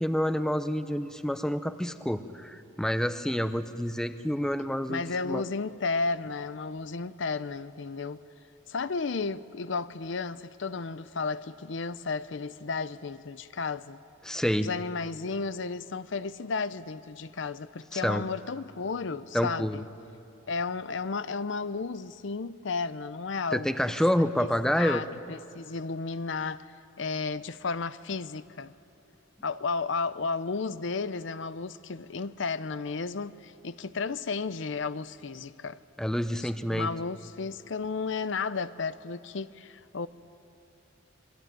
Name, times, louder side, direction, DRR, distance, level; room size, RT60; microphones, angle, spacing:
voice 1, 0.0-5.4 14.2-14.7 17.9-18.2 19.3-19.8 23.5-25.0 36.0-36.9, equal, 5° left, 0.6 m, -28 dB
voice 2, 4.9-8.2 8.7-14.0 14.6-19.8 20.5-23.7 24.4-24.5 24.8-26.6 27.0-28.7 29.4-35.8 36.4-40.1, left 4 dB, 65° left, 0.6 m, -33 dB
25.5 x 22.5 x 9.1 m
head